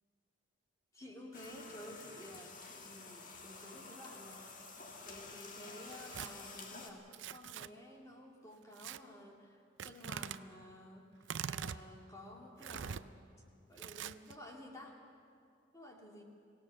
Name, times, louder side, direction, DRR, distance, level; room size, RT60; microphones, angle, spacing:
voice 1, 0.9-13.2 13.7-15.0 15.7-16.2, left 1 dB, 15° left, 0 dB, 2.3 m, -53 dB
sound 1, 1.3-6.9, left 3 dB, 40° left, 2.0 m, -51 dB
Tearing, 5.8-6.3 7.1-7.7 8.8-9.0 9.8-10.4 11.2-11.8 12.6-13.0 13.8-14.3, right 8 dB, 70° right, 0.5 m, -43 dB
24.5 x 17.0 x 7.0 m, 2.4 s
head